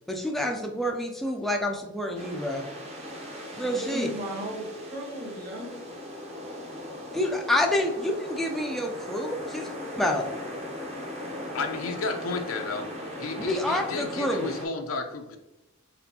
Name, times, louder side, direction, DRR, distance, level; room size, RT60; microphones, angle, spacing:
voice 1, 0.1-2.6 3.5-4.1 7.1-9.7 10.0-10.3 13.4-14.6, left 1 dB, ahead, 1 dB, 0.3 m, -28 dB
sound 1, 2.1-14.6, left 1 dB, 30° right, 0.8 m, -38 dB
voice 2, 3.6-5.8, equal, 45° right, -2 dB, 1.4 m, -36 dB
voice 3, 11.5-12.9 13.2-15.4, left 3 dB, 75° left, 4 dB, 0.5 m, -32 dB
4.2 x 3.9 x 2.7 m, 0.98 s
head